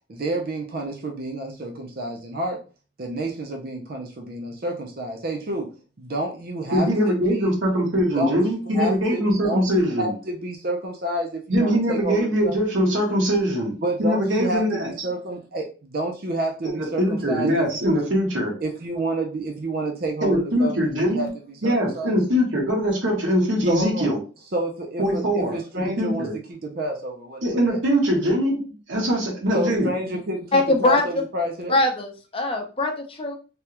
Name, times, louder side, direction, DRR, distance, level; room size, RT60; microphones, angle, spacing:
voice 1, 0.1-2.6 3.0-5.7 6.0-7.5 8.2-8.3 8.7-9.6 10.0-12.5 13.8-17.6 18.6-21.3 21.6-22.1 23.7-24.1 24.5-27.8 29.5-31.8, right 1 dB, 55° right, 2 dB, 0.6 m, -29 dB
voice 2, 6.7-10.1 11.5-14.9 16.8-18.5 20.2-21.3 21.6-24.2 25.0-26.3 27.4-29.9, equal, 80° right, -1 dB, 1.2 m, -22 dB
voice 3, 30.5-31.2 31.7-33.3, left 2 dB, 30° left, 3 dB, 0.6 m, -22 dB
3.3 x 2.4 x 2.9 m, 0.34 s
head